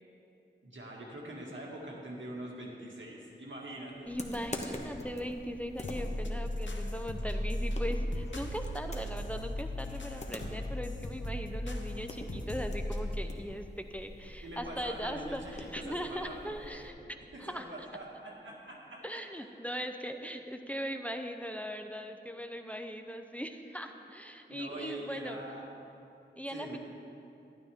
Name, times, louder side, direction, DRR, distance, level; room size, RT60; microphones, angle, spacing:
voice 1, 0.6-4.1 14.4-16.9 17.3-19.0 24.5-25.6 26.5-26.8, right 1 dB, 80° right, -3 dB, 1.8 m, -43 dB
sound 1, 4.1-16.9, left 1 dB, 35° left, 1.1 m, -46 dB
voice 2, 4.1-17.0 17.4-17.6 19.0-25.4 26.4-26.8, equal, 5° left, 6 dB, 0.6 m, -39 dB
sound 2, 5.8-13.2, left 1 dB, 75° left, 1.0 m, -36 dB
12.0 x 11.5 x 3.5 m, 2.8 s
wide cardioid pair, 65°, 19 cm